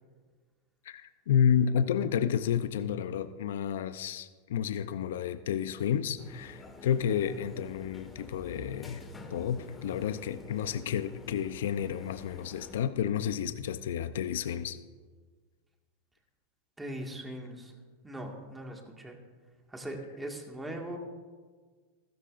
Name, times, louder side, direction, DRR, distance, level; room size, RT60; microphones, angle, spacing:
voice 1, 0.8-9.0 9.3-14.8, left 8 dB, 80° left, 11 dB, 0.6 m, -30 dB
sound 1, 6.2-12.8, left 3 dB, 15° left, 1.5 m, -49 dB
voice 2, 16.8-17.7 18.0-19.2 19.7-21.0, right 1 dB, 10° right, 1 dB, 1.9 m, -40 dB
14.5 x 13.0 x 2.6 m, 1.5 s
hypercardioid pair, 125°, 0 cm